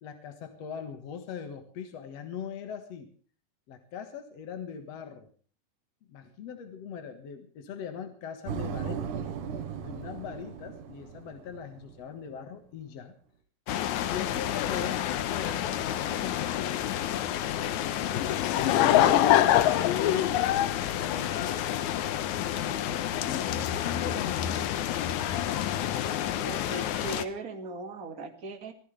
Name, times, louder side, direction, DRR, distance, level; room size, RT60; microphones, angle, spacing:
voice 1, 0.0-3.1 3.7-5.3 6.1-9.1 9.8-13.1 14.0-17.4 18.5-19.5 19.8-21.7 22.4-24.8, left 7 dB, 55° left, 6 dB, 2.5 m, -40 dB
sound 1, 8.5-12.2, right 7 dB, 70° right, 2.7 m, -37 dB
sound 2, 13.7-27.2, left 11 dB, 70° left, 2.2 m, -30 dB
Laughter / Crowd, 18.1-21.9, left 13 dB, 90° left, 2.6 m, -23 dB
voice 2, 18.8-19.9 26.4-28.7, right 2 dB, 30° right, 6 dB, 2.0 m, -39 dB
25.0 x 15.5 x 3.4 m, 0.42 s
omnidirectional pair, 3.8 m